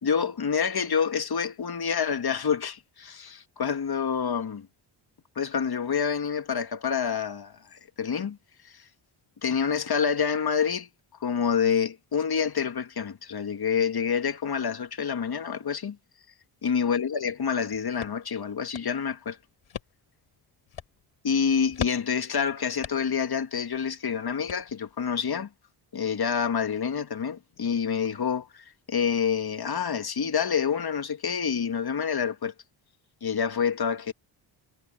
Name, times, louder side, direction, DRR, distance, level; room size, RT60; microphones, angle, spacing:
voice 1, 0.0-4.7 5.4-8.4 8.6-8.8 9.4-10.9 11.2-16.0 16.6-19.4 21.2-25.5 25.9-32.5 33.2-34.1, left 6 dB, 50° left, 2.0 m, -27 dB
sound 1, 17.5-25.1, left 9 dB, 75° left, 7.8 m, -42 dB
cardioid pair, 60°, 49 cm